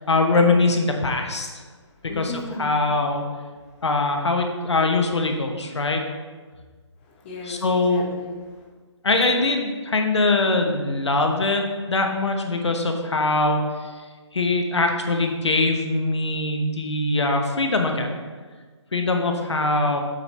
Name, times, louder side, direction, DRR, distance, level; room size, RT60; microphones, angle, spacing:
voice 1, 0.1-1.6 2.0-2.3 2.6-3.2 3.8-6.0 7.5-8.1 9.0-13.9 14.3-18.2 18.9-20.0, left 2 dB, 65° left, 4 dB, 1.1 m, -22 dB
voice 2, 2.1-2.7 7.0-8.7, left 3 dB, 20° left, -2 dB, 1.1 m, -37 dB
8.0 x 5.2 x 4.2 m, 1.4 s
figure-of-eight pair, 150°, 16 cm